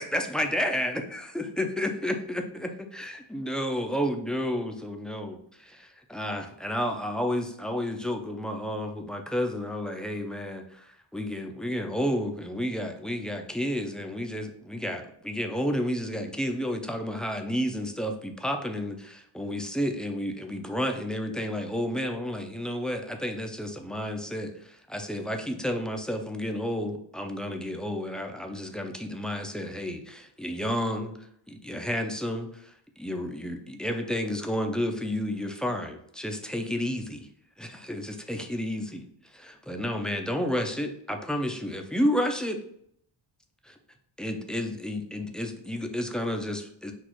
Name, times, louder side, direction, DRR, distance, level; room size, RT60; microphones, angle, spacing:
voice 1, 0.0-37.3 37.6-39.1 39.3-42.6 43.6-43.7 44.2-46.9, equal, ahead, 4 dB, 0.4 m, -31 dB
6.2 x 2.4 x 3.0 m, 0.69 s
wide cardioid pair, 115°, 49 cm